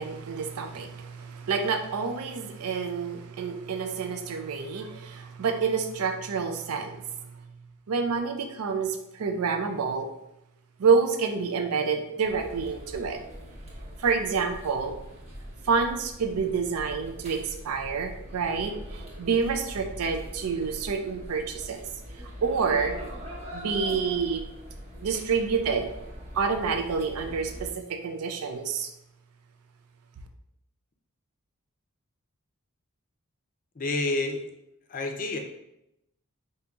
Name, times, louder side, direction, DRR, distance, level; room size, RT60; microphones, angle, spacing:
voice 1, 0.0-7.0 7.9-10.1 10.8-13.2 14.0-14.9 15.6-21.8 22.4-23.0 23.5-24.4 25.0-25.9 26.3-28.9, right 5 dB, 80° right, 5 dB, 0.5 m, -28 dB
sound 1, 12.2-27.7, equal, 30° right, 1.0 m, -42 dB
voice 2, 33.8-34.5 34.9-35.4, left 2 dB, 40° left, 4 dB, 0.5 m, -29 dB
5.0 x 2.8 x 2.3 m, 0.84 s
head